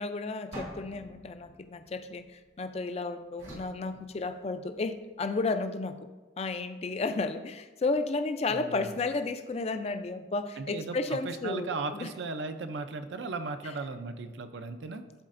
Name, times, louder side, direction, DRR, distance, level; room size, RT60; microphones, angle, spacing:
voice 1, 0.0-6.1 6.4-12.1, left 3 dB, 30° left, 9 dB, 0.3 m, -33 dB
sound 1, 0.5-2.7 3.4-4.8, right 1 dB, 80° right, 2.0 m, -47 dB
voice 2, 8.5-8.9 10.6-15.0, right 3 dB, 60° right, 9 dB, 0.5 m, -37 dB
11.5 x 4.1 x 2.5 m, 1.3 s
head